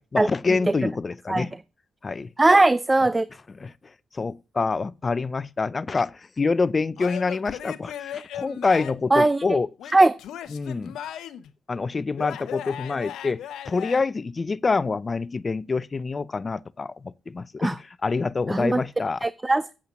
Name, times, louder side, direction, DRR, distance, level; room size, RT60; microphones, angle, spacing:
voice 1, 0.0-1.5 2.0-2.3 3.5-3.7 4.1-9.9 10.5-11.0 11.7-19.3, left 4 dB, 40° left, 0.7 m, -26 dB
voice 2, 2.4-3.3 9.1-9.4 9.9-10.1 17.6-17.7 18.5-18.8 19.2-19.7, right 2 dB, 20° right, 0.5 m, -19 dB
Male speech man speaking / Yell / Laughter, 7.0-9.1 9.8-11.5 12.2-14.0, left 10 dB, 80° left, 0.9 m, -37 dB
8.8 x 8.0 x 6.4 m
supercardioid pair, 55°, 0 cm